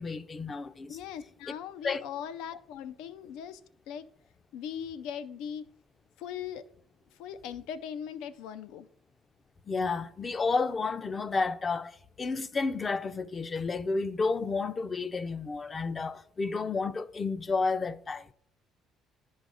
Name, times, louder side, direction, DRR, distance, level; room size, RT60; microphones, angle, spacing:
voice 1, 0.0-1.0 1.8-2.1 9.7-18.3, left 4 dB, 25° left, 0.4 m, -31 dB
voice 2, 0.9-3.6 3.9-4.1 4.5-5.6 6.2-6.7 7.1-8.9, left 8 dB, 90° left, 0.5 m, -39 dB
11.0 x 3.9 x 4.8 m
cardioid pair, 125°, 0 cm